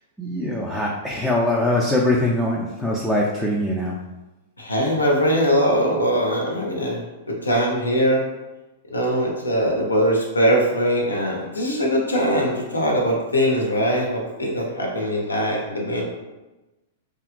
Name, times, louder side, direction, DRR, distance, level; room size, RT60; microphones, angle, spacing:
voice 1, 0.2-4.0, left 1 dB, ahead, -4 dB, 0.3 m, -22 dB
voice 2, 4.6-8.2 8.9-16.0, equal, 85° left, -2 dB, 0.6 m, -21 dB
2.8 x 2.3 x 2.4 m, 1.1 s
figure-of-eight pair, 105°, 0 cm